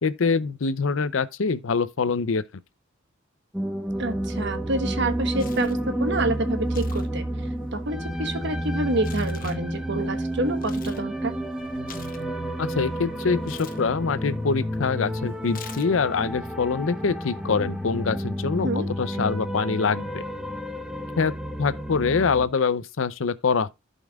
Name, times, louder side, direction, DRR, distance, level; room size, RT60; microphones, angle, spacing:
voice 1, 0.0-2.4 12.6-18.7 19.0-20.2 21.2-21.3 21.6-23.7, left 5 dB, 70° left, 0.6 m, -24 dB
sound 1, 3.5-22.5, right 1 dB, 5° right, 1.0 m, -30 dB
voice 2, 4.0-7.2 7.7-11.4 18.6-18.9, right 2 dB, 60° right, 1.3 m, -28 dB
Tearing, 5.0-5.9 6.6-7.1 7.4-11.1 11.4-12.9 13.4-13.8 15.5-16.1, left 6 dB, 45° left, 1.0 m, -45 dB
sound 2, 11.6-14.4, right 8 dB, 25° left, 1.4 m, -48 dB
15.5 x 5.4 x 2.4 m
head